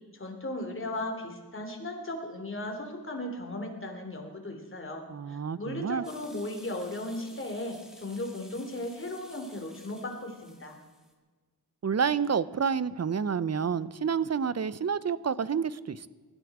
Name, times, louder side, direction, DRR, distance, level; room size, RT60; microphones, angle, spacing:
voice 1, 0.1-10.8, left 1 dB, 30° left, 3 dB, 3.0 m, -36 dB
voice 2, 5.1-6.0 11.8-16.1, right 6 dB, 40° right, 17 dB, 0.6 m, -29 dB
sound 1, 6.0-11.1, left 1 dB, ahead, 2.5 m, -54 dB
20.0 x 13.0 x 4.9 m, 1.4 s
wide cardioid pair, 90°, 39 cm